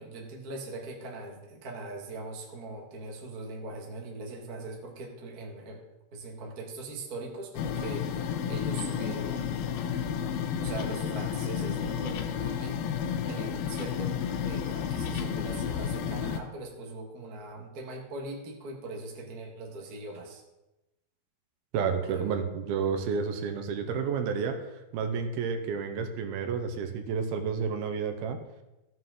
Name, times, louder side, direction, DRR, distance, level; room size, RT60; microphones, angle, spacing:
voice 1, 0.0-5.8 6.1-8.1 8.5-9.8 10.5-12.8 13.3-20.4 22.1-22.4, right 2 dB, 55° right, 0 dB, 1.0 m, -41 dB
sound 1, 7.5-16.4, left 8 dB, 80° left, 2.5 m, -31 dB
voice 2, 21.7-28.4, right 6 dB, 80° right, 6 dB, 2.7 m, -30 dB
15.0 x 7.6 x 3.9 m, 0.98 s
omnidirectional pair, 4.5 m